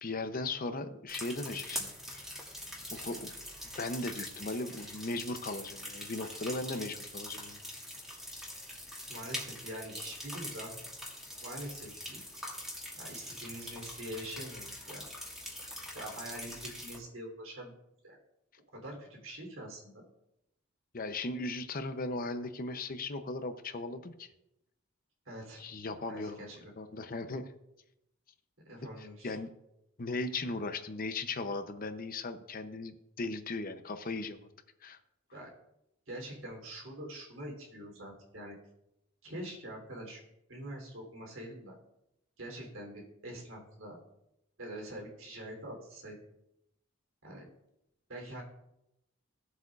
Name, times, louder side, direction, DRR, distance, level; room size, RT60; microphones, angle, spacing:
voice 1, 0.0-2.3 2.9-3.3 3.8-7.6 20.9-24.3 25.6-27.5 29.0-29.5 30.0-34.5 34.8-35.0, left 2 dB, 45° left, 9 dB, 0.7 m, -37 dB
sound 1, 1.1-17.0, left 1 dB, ahead, 2.0 m, -43 dB
voice 2, 9.1-10.7 11.4-12.2 12.9-15.1 15.9-17.7 18.0-18.2 18.7-20.0 25.2-25.6 26.1-26.7 28.6-29.3 35.3-35.5 36.1-38.6 39.2-40.2 40.5-41.8 42.4-44.0 44.6-46.1 47.2-47.4 48.1-48.4, right 1 dB, 75° right, 0 dB, 3.4 m, -44 dB
16.5 x 7.8 x 2.5 m, 0.86 s
head